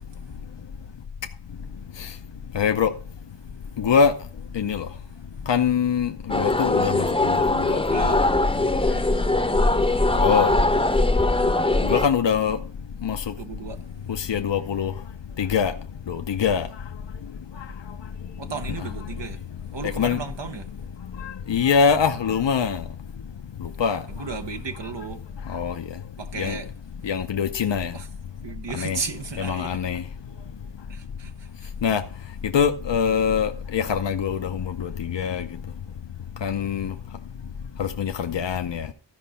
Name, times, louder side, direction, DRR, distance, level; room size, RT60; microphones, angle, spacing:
voice 1, 2.5-2.9 3.8-4.1 4.5-4.9 5.5-8.2 8.9-9.1 10.1-10.6 11.8-12.6 13.0-13.3 14.1-14.9 15.4-15.7 16.1-16.7 17.6-17.7 18.8-18.9 19.8-20.2 21.2-22.8 23.6-24.0 25.5-25.8 26.4-26.6 27.0-27.9 28.7-29.0 29.4-30.0 31.8-32.0 32.4-35.5 36.4-36.9 37.8-38.9, left 7 dB, 80° left, 0.7 m, -24 dB
sound 1, 6.3-12.1, left 2 dB, 10° left, 0.7 m, -21 dB
voice 2, 7.9-8.2 13.4-13.8 18.4-19.4 19.7-20.7 24.1-25.2 26.2-26.7 27.9-28.1 28.4-29.8 30.9-31.7, right 5 dB, 80° right, 1.0 m, -34 dB
13.5 x 5.1 x 5.6 m
wide cardioid pair, 50°, 42 cm